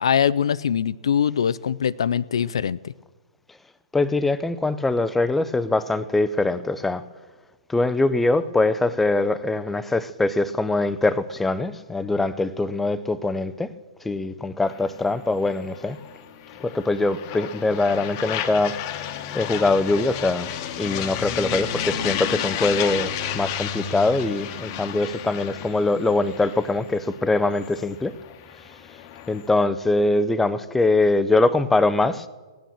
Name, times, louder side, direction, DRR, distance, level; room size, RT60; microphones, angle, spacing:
voice 1, 0.0-2.9, left 8 dB, 70° left, 0.4 m, -22 dB
voice 2, 3.9-7.0 7.7-13.7 14.0-16.0 16.6-20.5 20.8-28.1 29.3-32.3, left 2 dB, 5° left, 0.5 m, -23 dB
sound 1, 14.6-29.5, left 9 dB, 40° left, 1.0 m, -32 dB
17.0 x 9.1 x 7.3 m
figure-of-eight pair, 120°, 3 cm